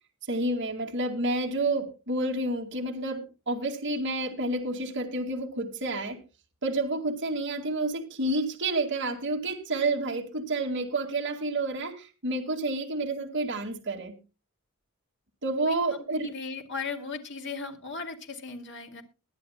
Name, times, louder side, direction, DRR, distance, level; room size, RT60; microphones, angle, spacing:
voice 1, 0.3-6.2 6.6-14.2 15.4-16.3, right 2 dB, 55° right, 2.2 m, -29 dB
voice 2, 16.1-19.0, left 4 dB, 55° left, 2.3 m, -37 dB
21.5 x 10.5 x 2.2 m
head